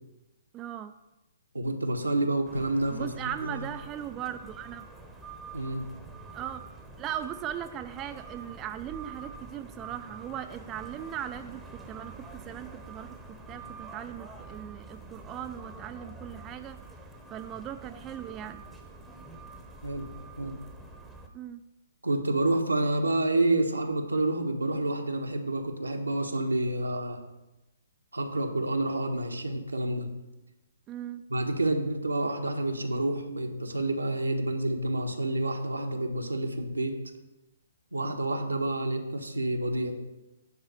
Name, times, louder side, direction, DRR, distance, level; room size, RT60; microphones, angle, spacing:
voice 1, 0.5-0.9 2.9-4.9 6.3-6.6 7.0-13.2 13.5-16.8 17.3-18.6 21.3-21.6 30.9-31.2, right 10 dB, 20° right, 9 dB, 0.4 m, -38 dB
voice 2, 1.5-3.7 5.5-5.9 19.8-20.1 20.4-20.6 22.0-27.2 28.1-30.1 31.3-37.0 37.9-40.0, right 2 dB, 90° right, 3 dB, 1.2 m, -29 dB
sound 1, 2.5-21.3, right 3 dB, 5° right, 0.9 m, -46 dB
10.0 x 4.0 x 6.7 m, 0.98 s
figure-of-eight pair, 130°, 0 cm